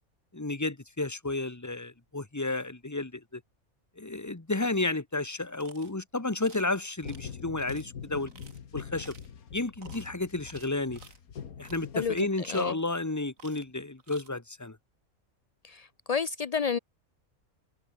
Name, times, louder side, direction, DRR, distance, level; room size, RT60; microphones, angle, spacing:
voice 1, 0.3-3.4 4.0-8.3 8.7-9.1 9.5-11.0 11.6-14.8, left 2 dB, 15° left, 1.2 m, -32 dB
sound 1, 5.5-5.9 6.4-6.7 7.0-7.3 7.7-7.8 8.3-8.6 9.0-9.3 9.8-10.1 10.4-11.2 11.6-11.8 12.3-13.0 13.4-13.7 14.0-14.3, right 5 dB, 65° right, 2.6 m, -53 dB
sound 2, 7.0-12.5, left 7 dB, 75° left, 1.9 m, -44 dB
voice 2, 11.9-12.8 15.6-16.8, left 6 dB, 45° left, 0.5 m, -31 dB
omnidirectional pair, 1.5 m